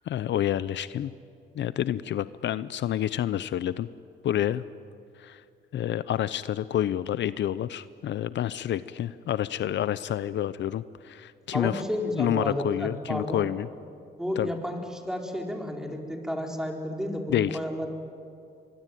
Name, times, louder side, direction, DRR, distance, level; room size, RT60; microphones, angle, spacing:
voice 1, 0.1-1.1 1.5-3.9 4.2-4.6 5.2-5.4 5.7-11.8 12.1-13.7 14.4-14.5 17.3-17.6, left 11 dB, 65° left, 16 dB, 0.7 m, -28 dB
voice 2, 11.5-13.4 14.2-17.9, left 1 dB, 5° right, 2 dB, 4.2 m, -31 dB
25.5 x 22.0 x 9.3 m, 2.4 s
cardioid pair, 90°, 20 cm